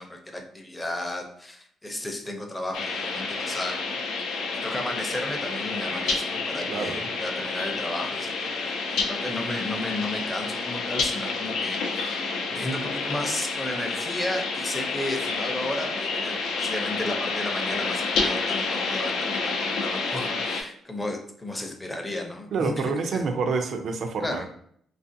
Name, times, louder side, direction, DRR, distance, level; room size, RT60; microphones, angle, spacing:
voice 1, 0.0-4.0 4.3-12.2 12.5-23.3 24.2-24.5, left 1 dB, 15° left, 2 dB, 0.5 m, -34 dB
sound 1, 2.7-20.6, left 4 dB, 80° left, 0.4 m, -29 dB
voice 2, 6.7-7.0 22.5-24.5, right 4 dB, 60° right, 6 dB, 0.4 m, -28 dB
2.4 x 2.4 x 2.6 m, 0.65 s
cardioid pair, 90°, 0 cm